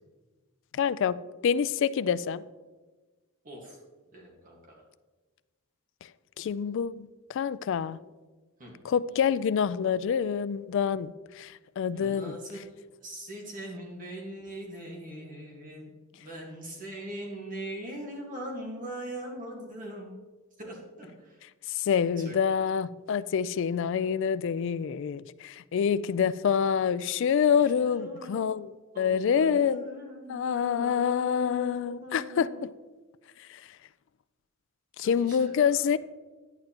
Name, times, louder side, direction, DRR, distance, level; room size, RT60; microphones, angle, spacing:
voice 1, 0.7-2.4 6.0-6.1 6.4-8.0 8.8-12.4 21.7-29.9 30.3-32.7 33.4-33.7 35.0-36.0, left 7 dB, 60° left, 0.3 m, -27 dB
voice 2, 3.4-3.8 4.1-4.8 8.6-8.7 11.9-20.1 20.6-21.4 22.2-22.6 26.4-26.5 26.8-27.0 27.5-28.5 28.9-32.6 35.0-36.0, equal, 40° right, 1.6 m, -42 dB
10.5 x 9.0 x 2.9 m
head